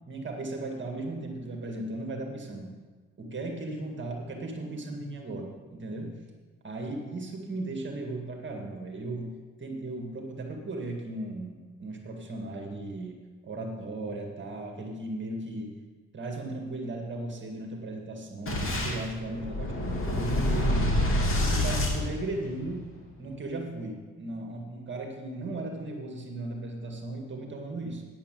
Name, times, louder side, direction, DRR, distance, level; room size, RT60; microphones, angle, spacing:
voice 1, 0.1-2.7 3.2-6.2 6.6-13.2 13.4-15.7 16.1-20.9 21.3-22.9 23.2-28.0, right 2 dB, 40° right, 2 dB, 2.0 m, -36 dB
Boom, 18.5-22.8, left 1 dB, 45° left, 2.7 m, -27 dB
9.3 x 8.6 x 7.6 m, 1.4 s
cardioid pair, 90°, 30 cm